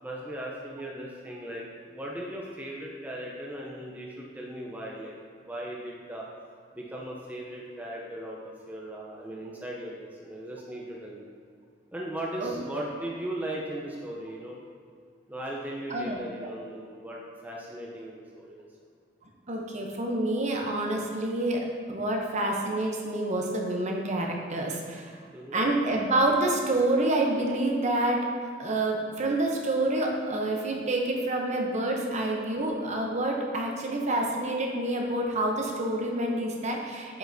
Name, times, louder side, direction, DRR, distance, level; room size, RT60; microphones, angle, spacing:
voice 1, 0.0-5.1 5.4-6.3 6.7-11.3 11.9-14.6 15.3-18.7 25.3-25.6, right 1 dB, 10° right, -3 dB, 0.5 m, -38 dB
voice 2, 15.9-16.5 19.5-25.2 25.5-28.3 28.6-37.2, right 2 dB, 40° right, 0 dB, 0.7 m, -28 dB
7.6 x 5.1 x 2.7 m, 2.1 s
head